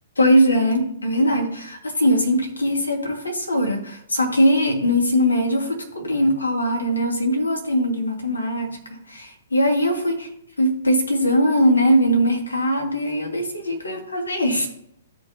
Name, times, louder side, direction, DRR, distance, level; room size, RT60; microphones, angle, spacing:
voice 1, 0.2-10.3 10.6-14.7, equal, 80° left, 4 dB, 2.0 m, -21 dB
13.5 x 5.3 x 2.8 m, 0.73 s
figure-of-eight pair, 120°, 0 cm